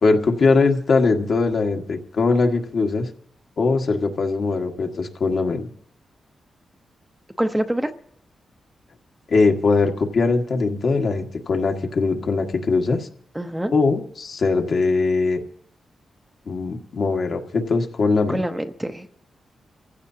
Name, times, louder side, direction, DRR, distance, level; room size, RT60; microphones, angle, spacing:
voice 1, 0.0-3.1 3.6-5.7 9.3-13.1 13.7-15.4 16.5-18.4, left 3 dB, 60° left, 2 dB, 1.7 m, -21 dB
voice 2, 7.4-7.9 13.3-13.7 18.3-19.1, right 1 dB, 10° right, 6 dB, 0.8 m, -25 dB
26.5 x 15.5 x 2.8 m, 0.67 s
cardioid pair, 105°, 0 cm